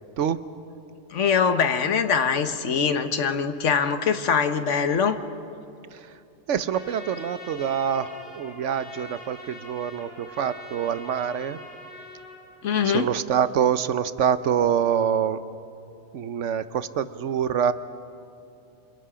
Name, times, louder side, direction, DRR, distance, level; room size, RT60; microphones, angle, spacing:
voice 1, 1.1-5.2 12.6-13.1, left 6 dB, 85° left, 9 dB, 1.4 m, -23 dB
voice 2, 6.5-11.6 12.8-15.4 16.1-17.7, right 8 dB, 85° right, 13 dB, 1.1 m, -25 dB
Trumpet, 6.7-12.4, left 1 dB, 65° left, 3.3 m, -43 dB
28.5 x 27.5 x 5.0 m, 2.7 s
omnidirectional pair, 1.2 m